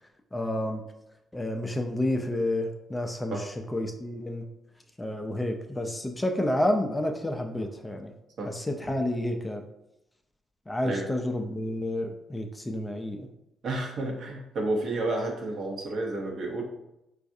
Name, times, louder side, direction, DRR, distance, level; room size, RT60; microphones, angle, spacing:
voice 1, 0.3-0.8 1.3-3.4 3.7-4.5 5.0-8.1 8.5-9.6 10.7-13.3, left 1 dB, 15° left, 4 dB, 0.4 m, -30 dB
voice 2, 13.6-16.6, right 2 dB, 60° right, 0 dB, 0.9 m, -31 dB
4.5 x 2.4 x 2.6 m, 0.88 s
cardioid pair, 90°, 0 cm